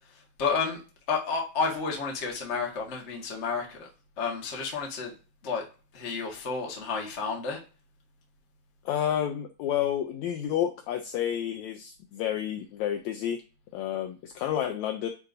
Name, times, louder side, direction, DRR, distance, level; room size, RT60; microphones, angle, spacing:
voice 1, 0.4-0.8 1.1-3.9 4.2-5.1 5.4-5.6 5.9-7.6, left 5 dB, 45° left, -1 dB, 0.9 m, -30 dB
voice 2, 8.8-13.4 13.7-15.1, left 10 dB, 90° left, 5 dB, 1.6 m, -30 dB
9.9 x 3.9 x 2.6 m, 0.33 s
omnidirectional pair, 3.9 m